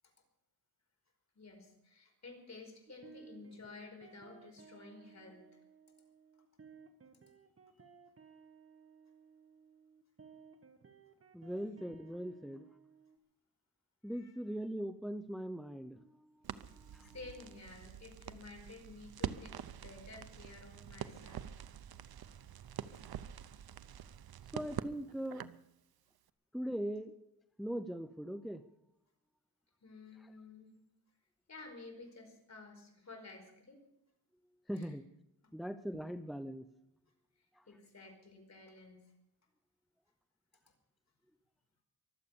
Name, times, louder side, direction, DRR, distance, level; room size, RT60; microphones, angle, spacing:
voice 1, 1.3-5.6 11.4-11.5 14.1-14.3 16.6-21.5 29.8-30.8 31.5-33.8 34.7-34.9 35.4-35.6 37.7-39.1, left 3 dB, 40° left, 4 dB, 4.8 m, -53 dB
sound 1, 2.9-13.2, right 6 dB, 35° right, 1.6 m, -59 dB
voice 2, 11.3-12.7 14.0-17.1 24.5-25.5 26.5-27.1 27.6-28.7 30.2-30.3 34.7-35.1 35.5-36.7 37.5-37.7, equal, ahead, 10 dB, 0.7 m, -41 dB
Crackle, 16.4-25.7, right 9 dB, 65° right, 0.8 m, -46 dB
23.5 x 8.1 x 7.0 m, 0.85 s
cardioid pair, 95°, 39 cm